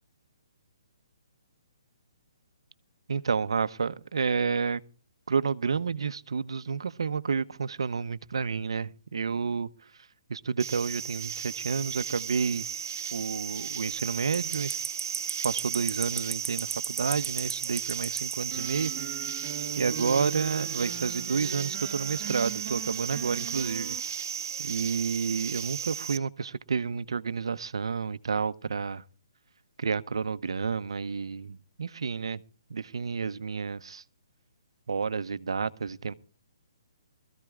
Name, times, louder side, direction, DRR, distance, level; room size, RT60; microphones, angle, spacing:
voice 1, 3.1-4.8 5.3-9.7 10.3-12.7 13.1-14.7 15.4-18.9 19.8-24.0 24.6-29.0 29.8-32.4 32.7-34.0 34.9-36.1, right 5 dB, 80° right, 0.8 m, -30 dB
sound 1, 10.6-26.2, right 8 dB, 40° right, 1.3 m, -34 dB
sound 2, 18.5-24.0, right 9 dB, 20° right, 1.4 m, -40 dB
23.0 x 14.5 x 2.4 m
hypercardioid pair, 180°, 3 cm